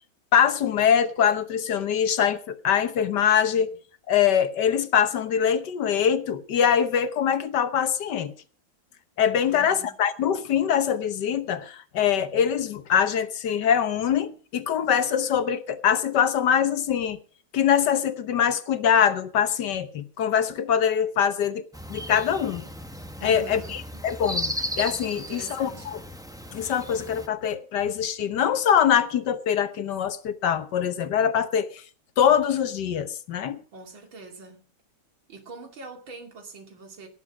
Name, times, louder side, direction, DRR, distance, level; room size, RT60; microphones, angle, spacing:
voice 1, 0.3-3.8 4.1-8.3 9.2-17.2 17.5-22.6 23.2-26.0 26.5-31.8 32.2-33.6, left 8 dB, 65° left, 1.5 m, -23 dB
voice 2, 9.5-10.0 23.2-24.0 25.1-25.9 33.7-34.7 35.3-37.1, right 3 dB, 75° right, 3.2 m, -44 dB
sound 1, 21.7-27.3, equal, 5° right, 0.3 m, -35 dB
18.0 x 7.6 x 6.0 m
omnidirectional pair, 2.2 m